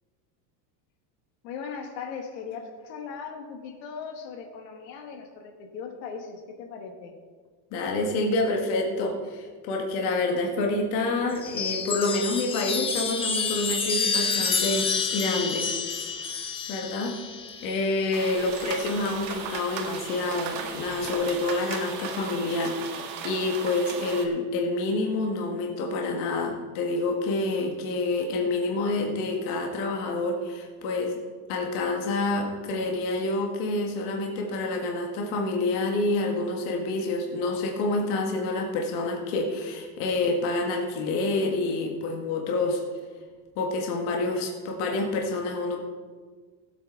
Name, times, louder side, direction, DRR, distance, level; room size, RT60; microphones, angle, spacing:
voice 1, 1.4-7.1, left 6 dB, 75° left, 3 dB, 1.9 m, -38 dB
voice 2, 7.7-15.7 16.7-17.1 17.6-31.2 31.5-42.8 43.6-45.8, left 2 dB, 50° left, 1 dB, 1.7 m, -28 dB
Chime, 11.3-19.1 20.4-21.0, left 5 dB, 10° left, 0.6 m, -29 dB
sound 1, 18.1-24.2, right 6 dB, 80° right, 2.0 m, -36 dB
17.0 x 8.2 x 3.9 m, 1.5 s
cardioid pair, 170°, 50 cm